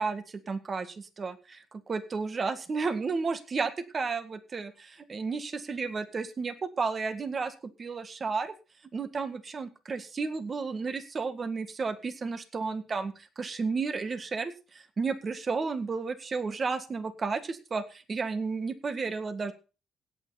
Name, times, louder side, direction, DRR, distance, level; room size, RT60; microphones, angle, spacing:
voice 1, 0.0-8.5 8.9-19.5, right 4 dB, 40° right, 10 dB, 1.8 m, -32 dB
17.0 x 8.8 x 4.2 m, 0.33 s
cardioid pair, 90°, 0 cm